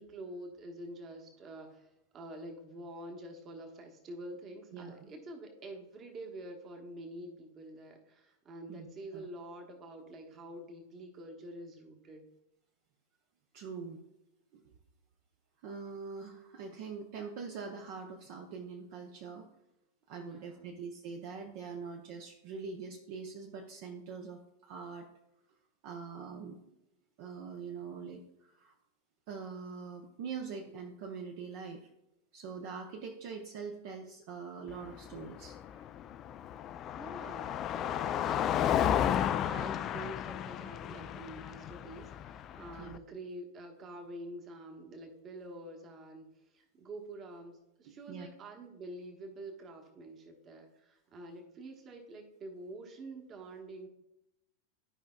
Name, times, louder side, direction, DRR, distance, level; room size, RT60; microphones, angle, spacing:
voice 1, 0.0-12.2 20.2-20.8 37.0-38.4 38.8-53.9, right 1 dB, 30° right, 3 dB, 1.2 m, -47 dB
voice 2, 4.7-5.1 8.7-8.9 9.1-9.3 13.5-14.0 14.5-14.6 15.6-19.5 20.1-25.1 25.8-26.6 27.2-28.7 29.3-31.9 32.3-35.8 42.8-43.0 48.1-48.3, right 5 dB, 45° right, 2 dB, 0.7 m, -43 dB
Car passing by, 34.7-43.0, left 10 dB, 30° left, 0.3 m, -33 dB
12.0 x 5.2 x 2.3 m, 0.89 s
figure-of-eight pair, 90°, 0 cm